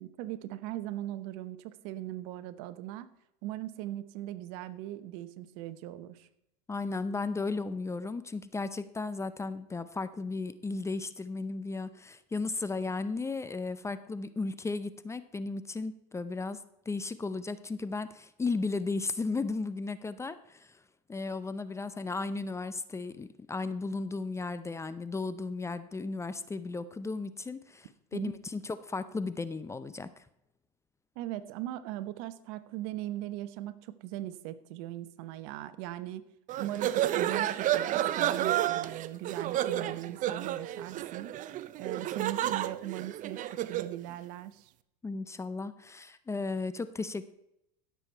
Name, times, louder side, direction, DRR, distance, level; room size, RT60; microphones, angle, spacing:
voice 1, 0.0-3.1 3.4-6.3 28.1-28.4 31.2-36.3 36.6-41.3 41.8-44.7, right 14 dB, 65° right, 13 dB, 0.9 m, -39 dB
voice 2, 6.7-20.8 21.1-30.3 45.0-47.3, left 3 dB, 15° left, 13 dB, 0.5 m, -35 dB
sound 1, 36.5-44.0, right 12 dB, 40° right, 0.6 m, -31 dB
16.0 x 7.0 x 4.5 m, 0.81 s
supercardioid pair, 105°, 20 cm